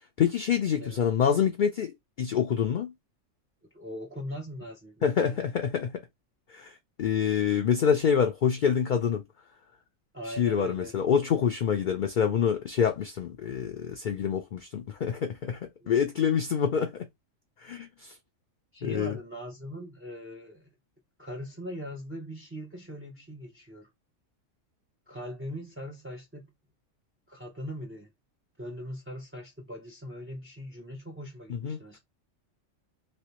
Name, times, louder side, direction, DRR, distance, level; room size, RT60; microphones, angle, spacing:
voice 1, 0.2-2.9 5.0-6.0 6.5-9.2 10.3-15.6 15.9-16.9 17.6-18.1 18.8-19.2 31.5-31.8, left 7 dB, 60° left, 0.5 m, -26 dB
voice 2, 3.7-5.4 10.1-11.0 15.8-15.9 18.7-20.7 21.2-23.9 25.1-26.5 27.3-28.1 28.6-32.0, equal, 20° right, 0.3 m, -40 dB
3.2 x 2.9 x 2.9 m
omnidirectional pair, 1.3 m